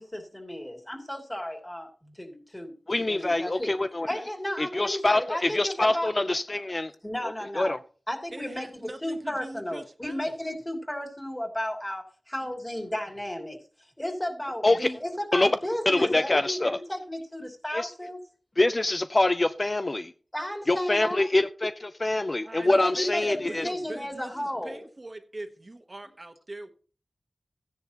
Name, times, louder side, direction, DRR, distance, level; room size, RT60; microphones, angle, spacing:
voice 1, 0.0-2.7 3.1-3.7 4.1-6.1 7.0-7.8 8.1-8.7 9.0-13.6 14.0-18.2 20.3-21.3 22.7-24.8, left 1 dB, 20° left, 2 dB, 2.8 m, -33 dB
voice 2, 2.9-4.1 4.6-6.9 7.5-7.8 14.6-14.9 15.3-15.5 15.9-16.8 17.7-17.9 18.6-20.1 20.7-23.7, left 2 dB, 40° left, 10 dB, 0.5 m, -25 dB
voice 3, 8.3-10.3 22.4-26.7, right 2 dB, 40° right, 7 dB, 1.2 m, -42 dB
14.0 x 10.0 x 2.9 m, 0.39 s
cardioid pair, 45°, 0 cm